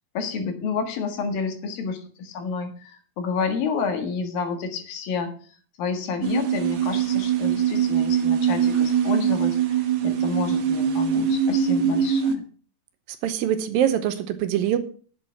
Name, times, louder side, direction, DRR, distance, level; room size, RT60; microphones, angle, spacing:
voice 1, 0.1-5.3 5.8-12.4, left 5 dB, 70° left, 6 dB, 3.4 m, -29 dB
sound 1, 6.2-12.3, right 8 dB, 60° right, 2.0 m, -22 dB
voice 2, 13.2-14.8, right 10 dB, 75° right, 11 dB, 2.6 m, -23 dB
11.5 x 7.9 x 5.8 m, 0.42 s
omnidirectional pair, 4.3 m